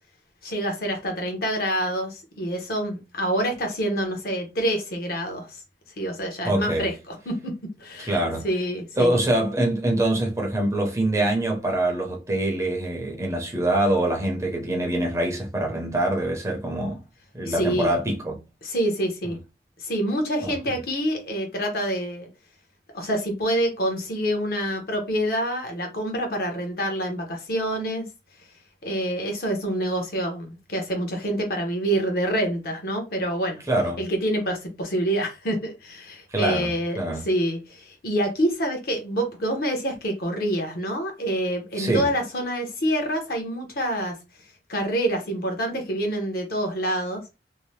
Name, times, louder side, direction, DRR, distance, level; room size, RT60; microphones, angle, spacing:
voice 1, 0.4-5.6 6.0-7.5 7.8-9.1 17.5-17.9 18.6-19.4 19.8-22.3 22.9-28.0 28.8-33.6 34.0-44.1 44.7-47.2, right 1 dB, 55° left, 0.8 m, -27 dB
voice 2, 6.4-6.9 8.0-8.5 9.0-17.0 17.3-18.4 20.4-20.5 33.7-34.0 36.3-37.3 41.8-42.1, right 1 dB, 15° right, 0.6 m, -24 dB
2.7 x 2.0 x 3.1 m
head